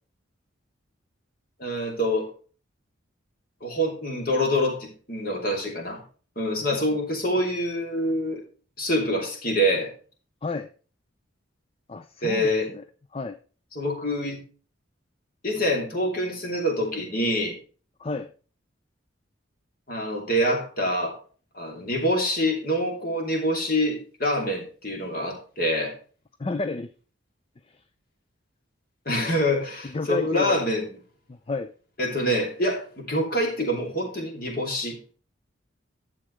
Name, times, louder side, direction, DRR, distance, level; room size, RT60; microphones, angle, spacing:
voice 1, 1.6-2.3 3.6-6.0 6.4-8.4 8.8-9.9 12.2-12.7 13.7-14.4 15.4-17.5 19.9-21.2 21.5-26.0 29.1-31.0 32.0-35.0, equal, 45° left, 1 dB, 2.7 m, -26 dB
voice 2, 11.9-12.6 13.1-13.4 18.0-18.3 26.4-26.9 29.8-30.6 31.3-31.7, left 3 dB, 30° left, 11 dB, 0.4 m, -30 dB
11.5 x 7.5 x 3.2 m, 0.38 s
head